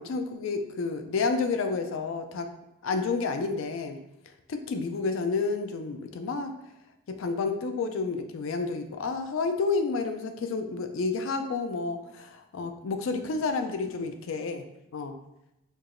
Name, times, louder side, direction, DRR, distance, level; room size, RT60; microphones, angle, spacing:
voice 1, 0.0-2.5 2.8-4.0 4.5-6.5 7.1-14.6 14.9-15.2, left 4 dB, 75° left, 7 dB, 0.4 m, -30 dB
4.5 x 2.9 x 2.5 m, 0.86 s
head